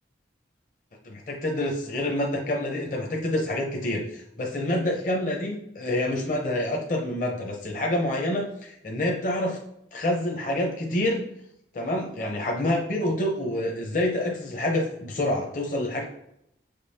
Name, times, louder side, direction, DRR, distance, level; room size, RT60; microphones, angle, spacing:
voice 1, 1.0-9.6 9.9-11.2 11.7-16.0, left 1 dB, 45° left, 0 dB, 0.7 m, -27 dB
7.1 x 5.2 x 2.8 m, 0.80 s
head